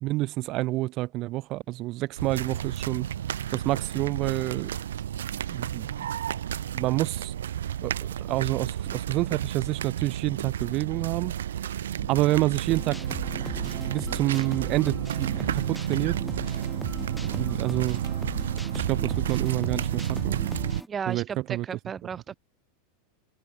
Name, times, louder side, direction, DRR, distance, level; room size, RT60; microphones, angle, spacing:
voice 1, 0.0-3.1 3.5-4.7 5.5-6.1 6.7-7.3 7.8-7.9 8.3-11.3 11.7-13.0 13.5-16.2 16.5-16.6 17.1-18.0 18.7-20.4 21.1-21.6, right 18 dB, 45° right, 1.2 m, -28 dB
sound 1, 2.2-20.8, right 10 dB, 70° right, 4.0 m, -31 dB
sound 2, 12.7-20.9, equal, ahead, 1.7 m, -39 dB
voice 2, 20.9-22.3, right 7 dB, 25° right, 1.1 m, -34 dB
figure-of-eight pair, 85°, 0 cm